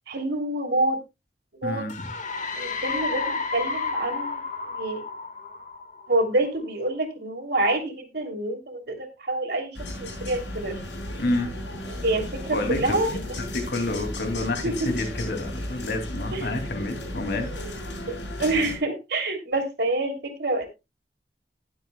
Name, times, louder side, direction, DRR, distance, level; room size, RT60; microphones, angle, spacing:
voice 1, 0.1-1.0 1.6-1.9 2.6-5.0 6.1-9.7 10.0-10.7 12.0-13.1 14.6-14.7 16.3-16.5 18.4-20.1 20.4-20.7, right 2 dB, 60° right, 3 dB, 2.9 m, -27 dB
voice 2, 1.6-2.1 11.2-11.5 12.5-13.2 13.5-17.5, left 2 dB, 60° left, 6 dB, 2.5 m, -29 dB
sound 1, 1.9-6.5, left 4 dB, 45° left, 1.6 m, -31 dB
sound 2, 9.7-18.8, left 1 dB, 80° left, 6.3 m, -35 dB
19.5 x 7.8 x 2.2 m, 0.24 s
head